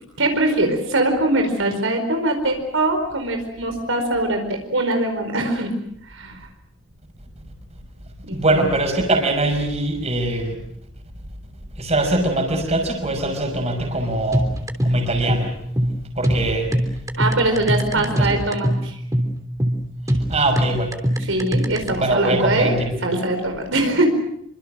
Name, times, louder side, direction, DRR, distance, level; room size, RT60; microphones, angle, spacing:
voice 1, 0.2-5.7 6.1-6.4 8.2-8.7 17.2-18.9 21.2-22.7 23.0-24.1, right 2 dB, 80° right, 4 dB, 4.8 m, -22 dB
voice 2, 8.3-10.6 11.8-14.5 14.8-15.5 16.2-16.7 18.0-18.3 20.3-20.9 21.9-22.9, right 2 dB, 35° right, 4 dB, 5.9 m, -22 dB
sound 1, 14.3-21.9, equal, 15° right, 3.3 m, -22 dB
26.5 x 25.5 x 6.4 m, 0.72 s
head